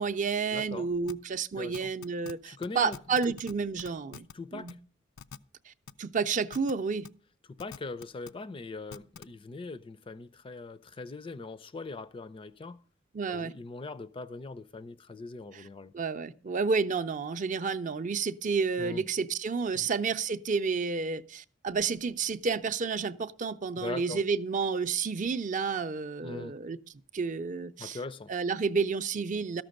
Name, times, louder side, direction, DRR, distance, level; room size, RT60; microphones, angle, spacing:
voice 1, 0.0-4.3 4.5-4.7 5.7-5.8 6.0-7.1 13.1-13.5 15.9-26.8 27.1-28.0 28.3-29.6, right 5 dB, 40° right, 0.5 m, -30 dB
voice 2, 0.5-0.9 1.6-1.9 2.4-3.0 4.3-4.8 7.5-12.8 13.3-15.9 18.8-19.0 19.7-19.9 23.8-24.2 26.2-26.5 27.8-28.3, left 3 dB, 25° left, 0.4 m, -41 dB
sound 1, 1.1-1.2 1.7-2.3 2.6-2.7 2.9-3.5 3.8-4.3 4.7-4.8 5.2-5.4 5.9-6.0 6.5-6.7 7.0-7.1 7.6-8.3 8.9-9.2, left 7 dB, 85° left, 0.4 m, -44 dB
13.0 x 6.0 x 6.4 m
head